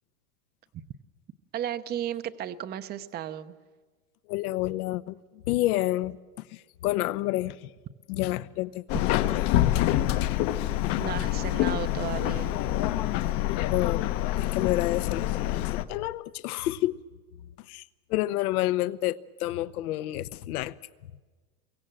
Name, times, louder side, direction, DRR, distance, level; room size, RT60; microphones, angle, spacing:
voice 1, 1.5-3.6 11.0-12.6, right 10 dB, 20° right, 0.7 m, -34 dB
voice 2, 4.3-7.7 8.1-9.5 10.8-11.0 13.4-17.0 17.6-17.8 18.1-20.7, left 16 dB, 70° left, 1.0 m, -30 dB
Subway metro underground, 8.9-15.9, left 14 dB, 45° left, 1.0 m, -26 dB
28.0 x 23.5 x 7.7 m
supercardioid pair, 145°, 47 cm